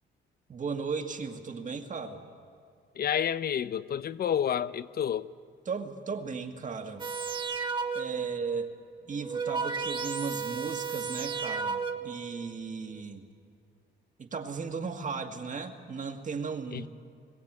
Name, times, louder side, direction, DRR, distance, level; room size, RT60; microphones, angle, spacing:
voice 1, 0.5-2.2 5.7-7.1 7.9-8.8 9.1-13.3 14.2-16.9, right 5 dB, 40° right, 1.8 m, -36 dB
voice 2, 3.0-5.3 16.7-16.9, left 9 dB, 50° left, 0.6 m, -29 dB
sound 1, 7.0-8.3 9.1-12.2 13.0-13.1, right 5 dB, 25° right, 1.5 m, -33 dB
21.0 x 15.5 x 8.8 m
cardioid pair, 90°, 20 cm